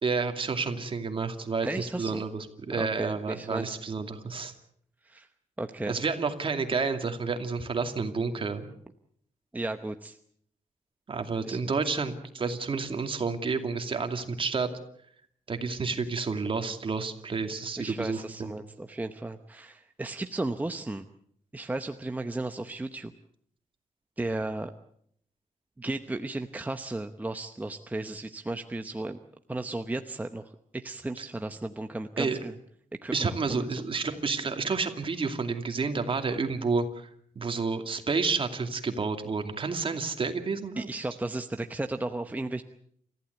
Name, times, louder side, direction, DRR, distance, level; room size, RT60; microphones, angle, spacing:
voice 1, 0.0-4.5 5.9-8.7 11.1-14.7 15.5-18.5 32.2-32.4 33.1-37.1 37.4-40.9, right 4 dB, 40° right, 6 dB, 2.5 m, -30 dB
voice 2, 1.6-2.2 2.7-3.8 5.0-5.3 5.6-6.0 9.5-10.2 11.4-11.6 17.8-21.0 21.5-23.1 24.2-24.7 25.8-29.2 29.5-30.4 30.7-32.6 33.0-33.8 40.8-42.6, right 2 dB, 10° right, 7 dB, 0.9 m, -34 dB
29.0 x 15.0 x 8.2 m, 0.67 s
wide cardioid pair, 135°, 13 cm